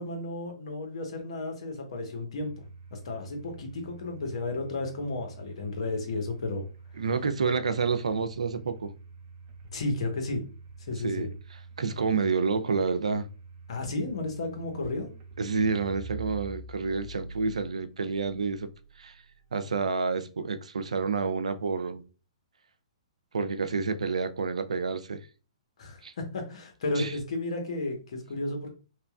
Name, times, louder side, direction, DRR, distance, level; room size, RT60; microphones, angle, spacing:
voice 1, 0.0-2.5 2.9-6.7 7.0-7.1 9.7-10.4 10.9-11.3 13.7-15.1 25.8-28.7, left 2 dB, 65° left, 0.9 m, -33 dB
Domestic sounds home sounds, 2.4-19.3, right 4 dB, 35° right, 0.6 m, -46 dB
voice 2, 7.0-8.9 11.0-11.3 11.8-13.3 15.4-18.7 19.0-19.2 19.5-22.0 23.3-25.3 26.0-26.1 27.0-27.1, right 4 dB, 80° right, 0.3 m, -29 dB
2.9 x 2.2 x 2.3 m
hypercardioid pair, 130°, 3 cm